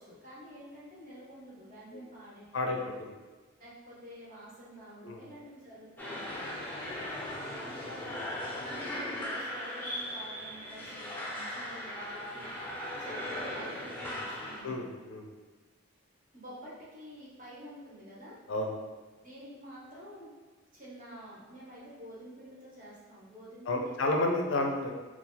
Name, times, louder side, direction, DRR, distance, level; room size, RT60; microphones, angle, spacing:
voice 1, 0.0-2.9 3.6-6.5 7.6-14.9 16.3-18.4 19.2-20.3 20.7-23.9, equal, 40° right, -7 dB, 1.0 m, -49 dB
voice 2, 2.5-3.1 5.0-5.2 14.6-15.3 18.5-18.7 23.7-24.9, left 2 dB, 60° left, 2 dB, 0.5 m, -31 dB
sound 1, 6.0-14.6, left 1 dB, 10° left, 0.5 m, -38 dB
2.8 x 2.4 x 3.8 m, 1.3 s
head